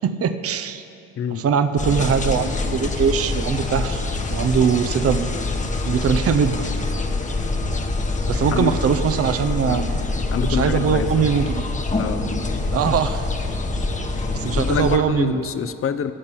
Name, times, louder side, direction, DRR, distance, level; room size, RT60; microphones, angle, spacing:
voice 1, 0.0-0.8 1.3-4.0 4.3-5.3 5.8-6.7 8.3-9.9 10.4-11.6 12.7-13.3 14.3-15.4, right 7 dB, 50° right, 9 dB, 0.7 m, -21 dB
sound 1, 1.8-15.0, left 3 dB, 25° left, 1.1 m, -25 dB
voice 2, 10.3-11.3 12.0-12.3 14.5-16.1, left 7 dB, 45° left, 12 dB, 0.7 m, -26 dB
15.0 x 5.4 x 8.9 m, 2.7 s
cardioid pair, 90°, 30 cm